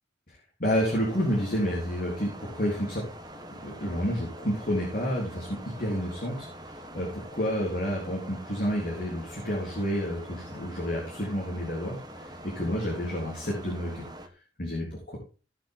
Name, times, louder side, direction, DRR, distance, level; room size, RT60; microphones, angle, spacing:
voice 1, 0.3-3.0 3.6-14.0 14.6-15.2, equal, 50° left, -3 dB, 3.5 m, -30 dB
sound 1, 0.7-14.3, equal, 20° right, 1.3 m, -44 dB
17.0 x 6.1 x 3.8 m, 0.35 s
head